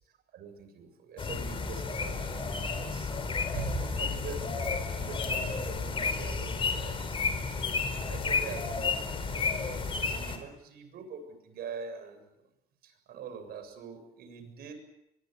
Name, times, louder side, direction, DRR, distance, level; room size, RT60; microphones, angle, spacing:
voice 1, 0.3-3.1 3.5-12.4 12.8-14.7, right 5 dB, 65° right, 7 dB, 7.3 m, -43 dB
sound 1, 1.2-10.4, left 4 dB, 30° left, 4.4 m, -32 dB
23.5 x 23.0 x 8.3 m, 0.84 s
cardioid pair, 110°, 17 cm